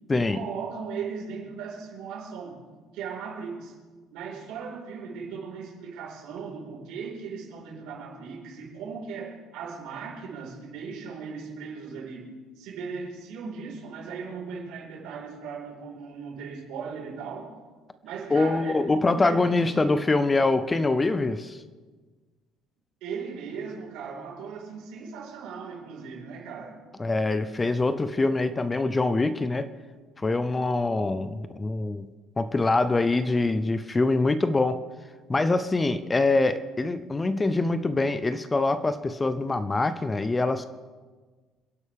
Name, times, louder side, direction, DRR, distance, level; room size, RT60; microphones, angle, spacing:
voice 1, 0.1-2.6 2.9-3.8 4.1-12.3 12.6-17.6 18.0-20.0 23.0-26.8, right 5 dB, 75° right, -2 dB, 4.9 m, -38 dB
voice 2, 18.3-21.6 27.0-29.7 30.2-32.1 32.4-34.8 35.3-40.7, left 3 dB, 15° left, 12 dB, 0.5 m, -24 dB
28.0 x 11.0 x 3.6 m, 1.4 s
cardioid pair, 170°, 0 cm